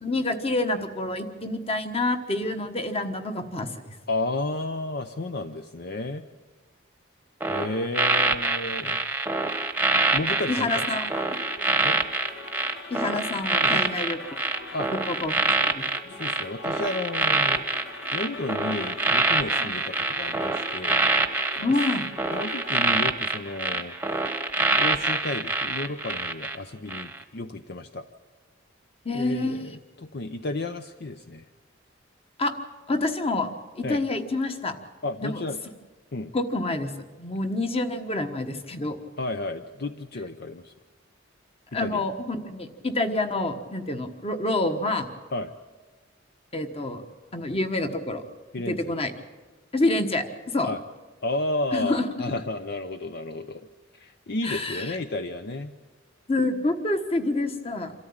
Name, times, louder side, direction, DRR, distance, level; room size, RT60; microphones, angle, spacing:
voice 1, 0.0-3.9 10.5-11.4 12.9-14.4 14.9-15.4 15.7-16.1 19.6-19.8 21.6-22.1 29.0-29.6 32.4-32.5 32.9-33.5 33.8-34.8 35.2-35.4 36.3-36.9 37.2-39.0 41.7-45.1 46.5-47.0 47.3-48.2 48.7-49.1 49.7-50.7 51.7-52.1 54.4-55.0 56.3-57.9, left 2 dB, 30° left, 7 dB, 1.4 m, -27 dB
voice 2, 4.1-6.2 7.5-9.0 10.1-10.9 11.8-12.0 13.6-14.0 14.7-14.9 16.1-17.6 18.1-21.0 22.3-24.2 24.7-28.1 29.1-31.4 33.8-34.0 35.0-35.6 36.1-36.3 39.2-40.7 41.7-42.1 45.3-45.5 48.5-48.9 50.6-50.8 51.2-53.6 53.9-55.7, left 2 dB, 55° left, 8 dB, 0.7 m, -32 dB
sound 1, 7.4-26.6 26.9-27.2, right 3 dB, 10° right, 1.1 m, -25 dB
sound 2, 10.0-22.9, left 3 dB, 75° left, 2.4 m, -43 dB
26.5 x 13.5 x 8.8 m, 1.3 s
head